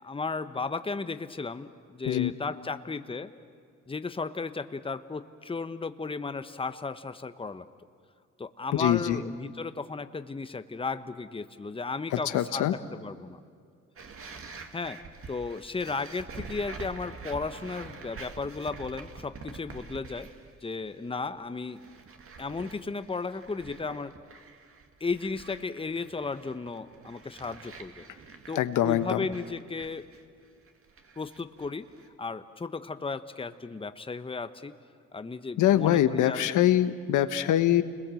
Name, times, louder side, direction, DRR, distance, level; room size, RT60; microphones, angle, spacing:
voice 1, 0.0-3.3 3.9-7.6 8.4-13.4 14.7-15.0 15.3-20.3 20.6-21.8 22.4-24.1 25.0-28.0 28.5-30.0 31.2-31.9 32.2-34.7 35.1-36.5, left 4 dB, 20° left, 11 dB, 1.0 m, -35 dB
voice 2, 8.7-9.2 12.1-12.7 28.5-29.3 35.6-37.8, left 12 dB, 80° left, 11 dB, 1.2 m, -24 dB
sound 1, 14.0-20.6 20.9-21.3 21.6-32.1, right 4 dB, 45° right, 2.1 m, -46 dB
29.5 x 21.0 x 7.7 m, 2.2 s
cardioid pair, 90°, 30 cm